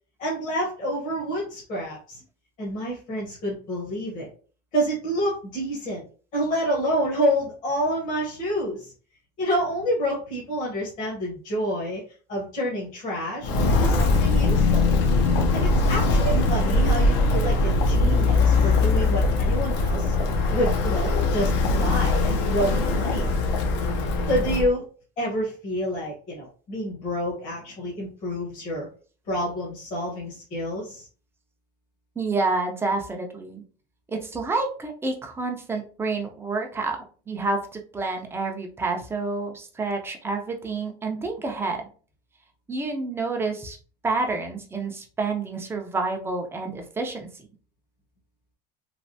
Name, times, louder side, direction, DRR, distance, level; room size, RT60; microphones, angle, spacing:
voice 1, 0.2-2.2 2.6-4.3 4.7-6.0 6.3-8.9 9.4-12.0 12.3-14.9 15.5-20.1 20.5-21.5 21.8-23.4 24.3-24.8 25.2-28.9 29.3-31.1, equal, 40° left, -4 dB, 1.0 m, -28 dB
Walk footsteps, 13.4-24.7, left 3 dB, 55° left, 0.6 m, -21 dB
voice 2, 32.2-33.6 34.1-37.0 37.3-41.9 42.7-43.8 44.0-47.5, right 3 dB, 10° right, 2 dB, 0.5 m, -28 dB
3.2 x 2.2 x 2.6 m, 0.39 s
cardioid pair, 155°, 21 cm